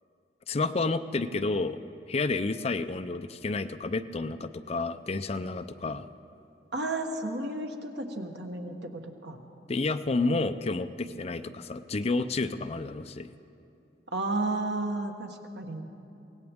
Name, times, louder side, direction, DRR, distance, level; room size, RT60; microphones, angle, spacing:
voice 1, 0.5-1.8 2.1-6.0 9.7-13.3, left 3 dB, 35° left, 9 dB, 0.5 m, -30 dB
voice 2, 6.7-9.4 14.1-15.8, right 2 dB, 75° right, 3 dB, 1.4 m, -32 dB
24.0 x 17.0 x 3.6 m, 2.8 s
head